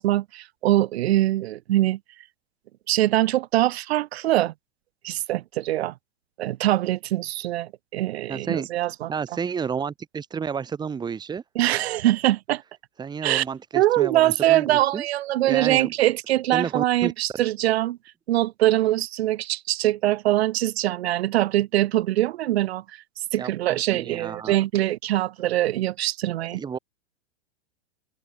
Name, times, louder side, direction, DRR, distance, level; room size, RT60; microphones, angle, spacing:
voice 1, 0.0-2.0 2.9-4.5 5.0-5.9 6.4-9.1 11.6-12.6 13.2-13.4 13.7-18.0 18.3-23.0 23.3-26.6, right 15 dB, 60° right, 2.3 m, -23 dB
voice 2, 8.3-8.7 9.1-11.4 13.0-15.0 15.5-15.9 16.5-17.1 23.3-24.5 26.5-26.8, right 6 dB, 10° right, 2.3 m, -31 dB
hypercardioid pair, 145°, 36 cm